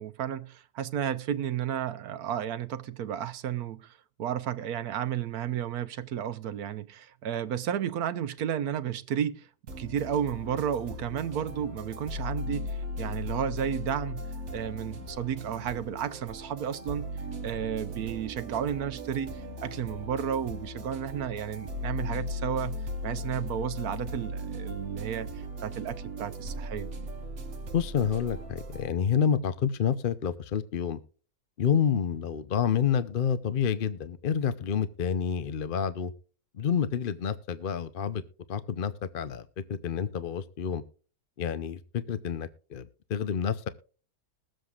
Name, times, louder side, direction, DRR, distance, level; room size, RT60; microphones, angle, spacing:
voice 1, 0.0-3.9 4.2-9.5 9.8-17.1 17.4-25.3 25.6-26.9, right 9 dB, 85° right, 1.3 m, -32 dB
sound 1, 9.7-28.9, left 1 dB, 55° right, 1.4 m, -38 dB
voice 2, 27.7-31.0 31.6-36.1 36.5-38.2 38.5-40.8 41.4-43.7, left 7 dB, 50° left, 0.7 m, -29 dB
21.0 x 7.7 x 2.4 m
omnidirectional pair, 1.6 m